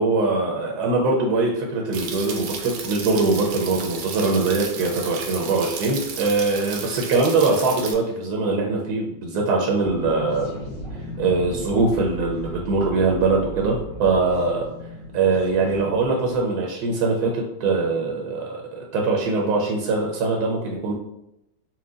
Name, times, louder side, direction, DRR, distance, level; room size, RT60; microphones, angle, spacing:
voice 1, 0.0-10.5 11.2-14.7 15.1-20.9, right 3 dB, 65° right, 0 dB, 1.0 m, -22 dB
sound 1, 1.9-7.9, right 6 dB, 85° right, 1.4 m, -34 dB
sound 2, 9.8-16.4, equal, 65° left, 1.8 m, -36 dB
4.5 x 2.2 x 3.7 m, 0.84 s
omnidirectional pair, 2.1 m